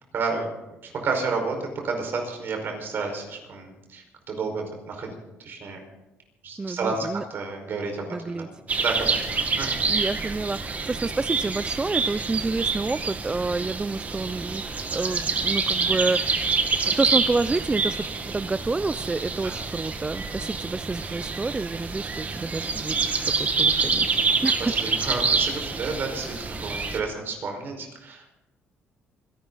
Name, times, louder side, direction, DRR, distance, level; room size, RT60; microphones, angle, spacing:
voice 1, 0.1-0.5 0.8-5.1 5.4-5.8 6.4-8.5 8.8-9.7 10.0-10.1 19.4-19.6 23.8-23.9 24.6-28.4, right 4 dB, 55° right, 3 dB, 5.2 m, -31 dB
voice 2, 6.6-7.2 8.1-8.5 9.9-16.6 16.8-18.1 18.3-24.7, right 3 dB, 20° right, 13 dB, 0.4 m, -29 dB
sound 1, 8.7-27.0, right 4 dB, 35° right, 1.8 m, -27 dB
26.5 x 12.0 x 4.1 m, 0.98 s
cardioid pair, 95°, 4 cm